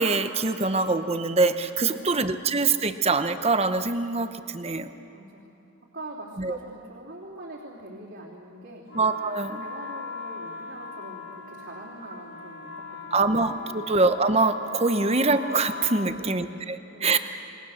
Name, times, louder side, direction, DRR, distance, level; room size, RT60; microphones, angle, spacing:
voice 1, 0.0-4.9 6.4-6.6 8.9-9.6 13.1-17.2, right 3 dB, 30° right, 9 dB, 0.9 m, -24 dB
voice 2, 1.8-2.4 5.1-5.5 5.9-8.9 9.5-13.9 16.0-17.2, right 1 dB, 55° right, -6 dB, 3.2 m, -44 dB
sound 1, 8.9-16.1, left 4 dB, 65° left, 3.7 m, -39 dB
29.0 x 22.0 x 6.6 m, 2.9 s
head